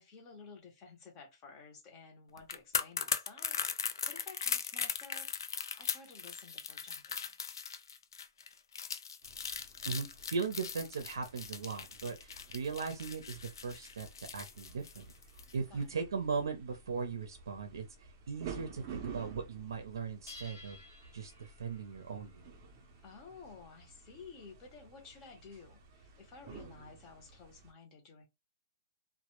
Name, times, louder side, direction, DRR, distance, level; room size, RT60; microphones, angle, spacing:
voice 1, 0.0-7.2 15.7-16.0 23.0-28.3, left 4 dB, 20° left, 0.6 m, -53 dB
sound 1, 2.4-15.5 15.8-16.0, left 6 dB, 80° left, 0.3 m, -39 dB
sound 2, 9.2-27.7, right 5 dB, 25° right, 0.5 m, -52 dB
voice 2, 9.9-15.0 15.5-17.8 18.3-20.8 21.1-22.4, right 5 dB, 80° right, 0.5 m, -38 dB
sound 3, 12.2-13.1 13.7-15.4 16.0-16.3 16.8-16.9 17.2-17.3 17.5-18.5 18.8-19.4 19.7-27.6, left 3 dB, 60° left, 0.8 m, -59 dB
2.1 x 2.0 x 2.9 m
hypercardioid pair, 170°, 2 cm